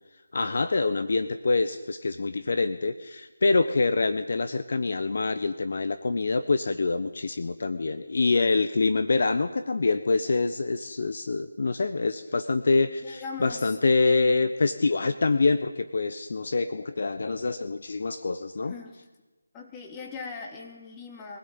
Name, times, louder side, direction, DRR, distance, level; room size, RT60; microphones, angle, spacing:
voice 1, 0.3-18.7, left 3 dB, 55° left, 11 dB, 1.2 m, -25 dB
voice 2, 13.0-13.8 18.6-19.0 19.5-21.4, left 5 dB, 15° left, 1 dB, 2.9 m, -40 dB
23.5 x 17.0 x 9.0 m, 1.2 s
figure-of-eight pair, 160°, 0 cm